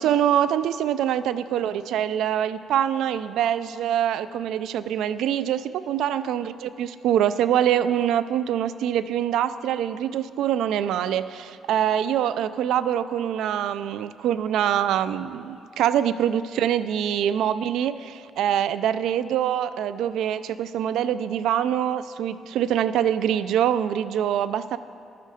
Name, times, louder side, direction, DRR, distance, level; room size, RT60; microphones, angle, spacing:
voice 1, 0.0-24.8, right 10 dB, 80° right, 15 dB, 0.3 m, -24 dB
12.0 x 9.3 x 4.9 m, 2.5 s
cardioid pair, 90°, 0 cm